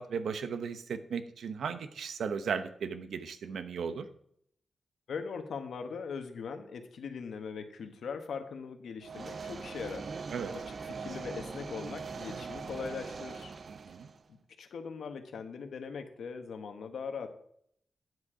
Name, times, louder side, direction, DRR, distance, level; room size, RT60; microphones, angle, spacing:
voice 1, 0.0-4.0 10.3-10.5 13.7-14.1, right 6 dB, 90° right, 10 dB, 0.8 m, -36 dB
voice 2, 5.1-10.1 10.5-13.5 14.3-17.3, left 5 dB, 80° left, 7 dB, 1.2 m, -40 dB
sound 1, 9.0-14.2, right 5 dB, 45° right, 0.5 m, -41 dB
9.4 x 7.8 x 4.9 m, 0.68 s
wide cardioid pair, 165°, 0 cm